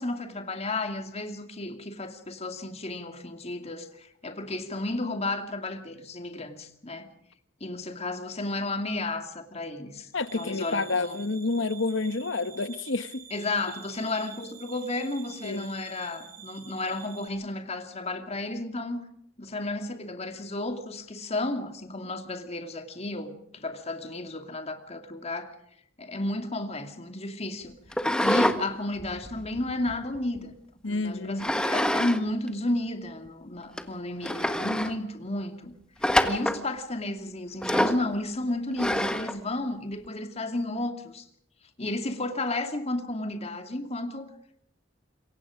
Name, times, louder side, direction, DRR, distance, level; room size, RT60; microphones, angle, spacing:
voice 1, 0.0-7.1 7.6-10.1 10.3-11.2 13.3-19.0 19.4-25.5 26.0-27.8 28.2-30.5 30.9-35.7 36.2-41.2 41.8-44.3, left 2 dB, 35° left, 2.5 m, -32 dB
voice 2, 10.1-13.3 15.4-15.7 30.8-31.5, left 3 dB, 70° left, 1.2 m, -29 dB
sound 1, 10.1-17.3, right 8 dB, 50° right, 5.3 m, -48 dB
sound 2, 27.9-28.6 29.0-30.4 31.4-32.2 32.5-32.6 33.3-33.4 33.8-33.9 34.2-34.9 36.0-36.6 37.6-38.0 38.8-39.4, left 1 dB, 5° left, 1.5 m, -26 dB
27.0 x 23.0 x 5.1 m
head